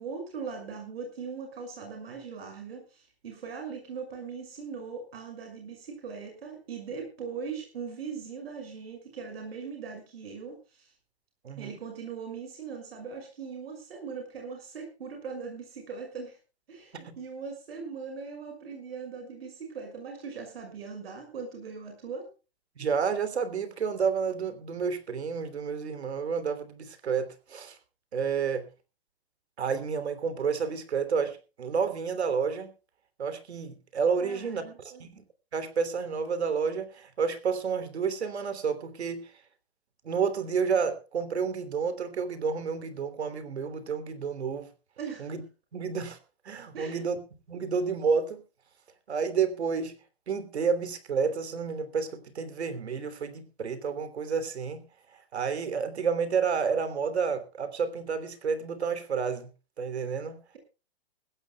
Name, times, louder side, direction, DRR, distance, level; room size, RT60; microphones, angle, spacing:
voice 1, 0.0-10.9 11.6-16.4 16.7-22.3 34.2-35.0 45.0-45.3 46.7-47.0, right 5 dB, 65° right, 3 dB, 6.1 m, -40 dB
voice 2, 11.4-11.8 16.9-17.1 22.8-27.8 28.1-28.7 29.6-32.7 33.2-35.2 35.5-39.3 40.0-44.7 45.2-45.4 45.7-46.2 46.4-47.2 47.5-48.4 49.1-49.9 50.3-54.8 55.3-59.5 59.8-60.4, right 6 dB, 90° right, 11 dB, 3.2 m, -30 dB
21.5 x 16.5 x 2.3 m, 0.32 s
hypercardioid pair, 165°, 32 cm